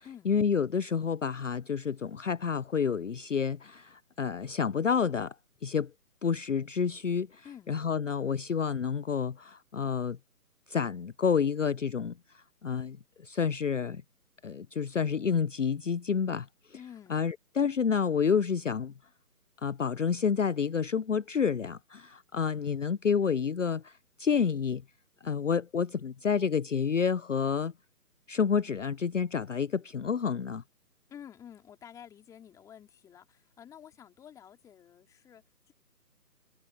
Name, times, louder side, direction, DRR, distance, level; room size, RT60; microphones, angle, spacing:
voice 1, 0.3-5.3 5.6-5.9 6.2-10.2 10.7-12.1 12.6-13.0 13.2-14.0 14.4-16.5 17.1-18.9 19.6-23.9 24.2-24.8 25.2-27.7 28.3-30.6, left 6 dB, 50° left, 0.7 m, -29 dB
voice 2, 16.7-17.2 31.1-35.7, left 9 dB, 5° left, 3.1 m, -50 dB
figure-of-eight pair, 145°, 47 cm